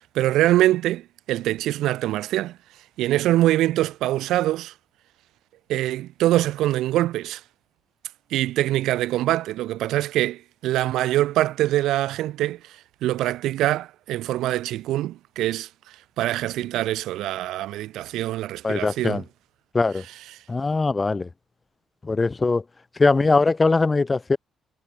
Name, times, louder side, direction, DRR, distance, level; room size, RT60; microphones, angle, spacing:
voice 1, 0.1-2.6 3.0-4.7 5.7-7.4 8.3-15.7 16.2-19.2, right 15 dB, 85° right, 1.5 m, -24 dB
voice 2, 18.6-19.2 19.7-20.0 20.5-21.3 22.0-22.6 23.0-24.4, left 3 dB, 25° left, 3.3 m, -21 dB
cardioid pair, 90°, 0 cm